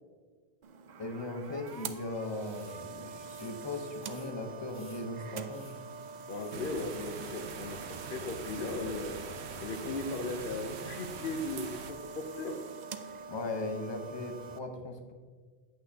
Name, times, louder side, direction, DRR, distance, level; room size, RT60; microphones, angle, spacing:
sound 1, 0.6-14.6, right 5 dB, 55° right, 0.5 m, -45 dB
voice 1, 1.0-5.7 13.3-15.1, left 2 dB, 25° left, 4 dB, 0.8 m, -38 dB
sound 2, 1.7-7.5, equal, 10° right, 1.9 m, -60 dB
voice 2, 6.3-9.1 9.6-12.6, left 3 dB, 60° left, 3 dB, 0.8 m, -37 dB
sound 3, 6.5-11.9, right 5 dB, 85° right, 1.0 m, -44 dB
8.7 x 8.2 x 2.8 m, 1.5 s
omnidirectional pair, 1.1 m